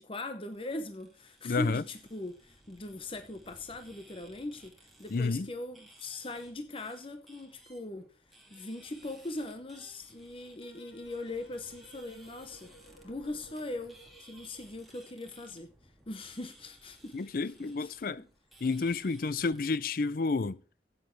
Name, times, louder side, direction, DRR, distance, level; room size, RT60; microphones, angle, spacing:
voice 1, 0.0-12.7 13.0-15.7 16.1-17.3 17.6-18.3, left 2 dB, 30° left, 0.9 m, -40 dB
sound 1, 0.5-19.8, right 1 dB, ahead, 2.4 m, -59 dB
voice 2, 1.4-1.8 5.1-5.5 17.1-18.2 18.6-20.6, left 4 dB, 50° left, 0.5 m, -30 dB
sound 2, 10.6-14.9, right 1 dB, 70° left, 2.0 m, -58 dB
13.5 x 8.9 x 3.2 m
head